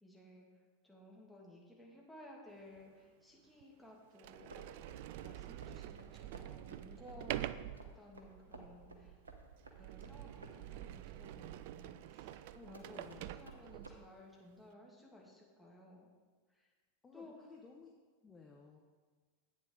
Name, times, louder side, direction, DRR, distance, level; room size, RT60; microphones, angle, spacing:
voice 1, 0.0-4.8 5.2-7.4 7.7-9.2 9.8-16.1 16.5-16.7 17.1-17.3, left 1 dB, ahead, -4 dB, 2.3 m, -57 dB
Sliding door, 2.8-2.9 3.6-3.7 4.2-14.1, right 13 dB, 50° right, 0.3 m, -47 dB
sound 1, 4.5-14.0, right 2 dB, 75° right, 1.0 m, -57 dB
voice 2, 12.5-13.4 17.0-17.9 18.2-18.8, left 5 dB, 15° left, 1 dB, 1.0 m, -57 dB
11.0 x 8.7 x 3.8 m, 1.4 s
figure-of-eight pair, 90°, 0 cm